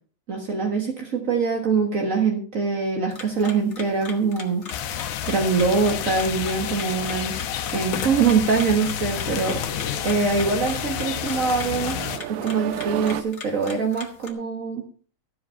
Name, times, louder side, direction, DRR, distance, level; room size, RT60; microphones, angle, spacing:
voice 1, 0.3-4.6 4.9-7.3 7.7-9.6 10.0-12.0 12.3-14.9, right 4 dB, 40° right, 2 dB, 1.2 m, -23 dB
sound 1, 3.1-14.3, left 4 dB, 35° left, 1.3 m, -41 dB
sound 2, 4.7-12.2, left 10 dB, 80° left, 2.4 m, -30 dB
sound 3, 6.2-13.2, right 11 dB, 80° right, 2.2 m, -37 dB
14.0 x 7.7 x 5.7 m, 0.42 s
omnidirectional pair, 3.4 m